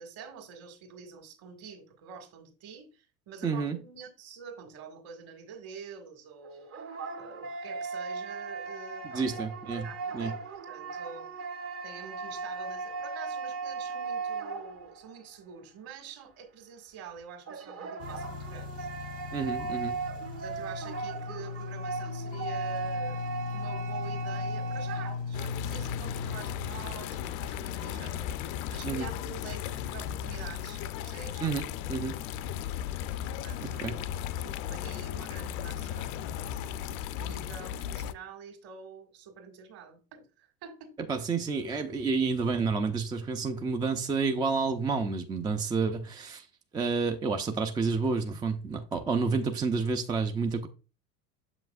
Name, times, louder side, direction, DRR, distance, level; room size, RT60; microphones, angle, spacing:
voice 1, 0.0-10.3 10.7-11.3 11.8-18.9 20.4-23.2 23.5-28.3 28.7-31.4 33.4-36.5 37.2-40.9, right 6 dB, 50° right, 2.0 m, -47 dB
voice 2, 3.4-3.8 9.1-9.9 10.1-10.3 19.3-19.9 28.8-29.1 31.4-32.1 33.8-34.0 41.1-46.5 46.7-50.7, right 4 dB, 10° right, 0.4 m, -29 dB
sound 1, 6.4-15.1 17.5-25.2, right 4 dB, 30° right, 0.8 m, -37 dB
sound 2, 18.0-27.1 27.8-27.9 29.1-29.3, left 5 dB, 85° left, 1.2 m, -38 dB
sound 3, 25.3-38.1, left 10 dB, 55° left, 0.6 m, -36 dB
7.0 x 5.7 x 2.4 m
hypercardioid pair, 90°, 46 cm